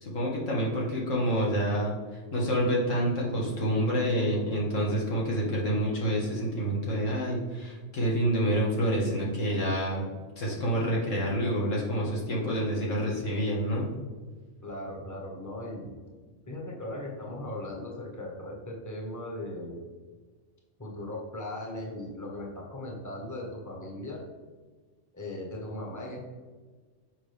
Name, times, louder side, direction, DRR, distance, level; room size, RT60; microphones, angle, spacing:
voice 1, 0.0-1.9 2.3-10.1 10.4-13.8, equal, 80° left, -4 dB, 2.1 m, -28 dB
voice 2, 14.6-16.0 16.5-19.9 20.8-24.2 25.1-26.2, left 1 dB, 15° left, -2 dB, 1.2 m, -38 dB
7.0 x 5.0 x 3.4 m, 1.4 s
omnidirectional pair, 1.3 m